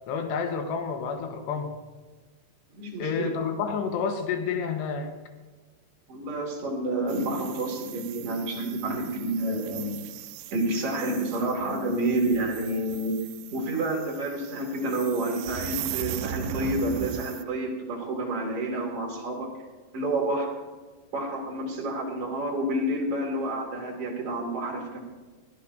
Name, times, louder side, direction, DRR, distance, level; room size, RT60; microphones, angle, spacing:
voice 1, 0.1-1.7 3.0-5.1, left 6 dB, 80° left, 5 dB, 3.4 m, -29 dB
voice 2, 2.7-3.3 6.1-10.0 10.5-13.2 13.5-19.5 19.9-20.5 21.1-25.0, right 1 dB, 40° right, -1 dB, 3.0 m, -29 dB
sound 1, 7.1-17.4, right 12 dB, 80° right, 2.8 m, -39 dB
22.5 x 14.5 x 2.7 m, 1.3 s
omnidirectional pair, 5.1 m